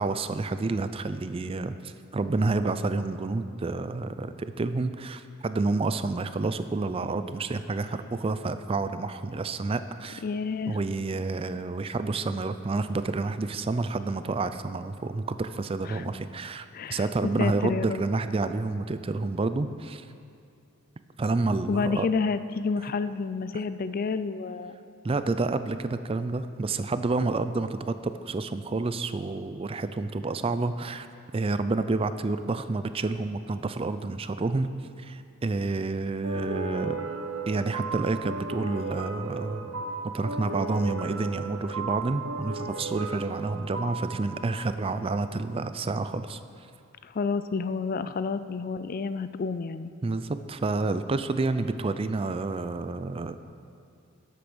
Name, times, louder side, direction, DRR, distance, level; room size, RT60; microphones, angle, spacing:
voice 1, 0.0-10.2 10.7-20.1 21.2-22.1 25.0-31.1 31.3-34.7 35.0-37.0 37.5-39.8 40.1-46.4 50.0-53.4, right 3 dB, 25° right, 11 dB, 0.4 m, -29 dB
voice 2, 10.2-10.8 15.8-16.0 16.7-17.1 17.4-18.0 21.7-24.8 47.0-49.9, left 4 dB, 45° left, 12 dB, 0.4 m, -29 dB
sound 1, 36.2-45.5, right 3 dB, 70° right, 0.8 m, -36 dB
11.5 x 8.5 x 6.1 m, 2.5 s
head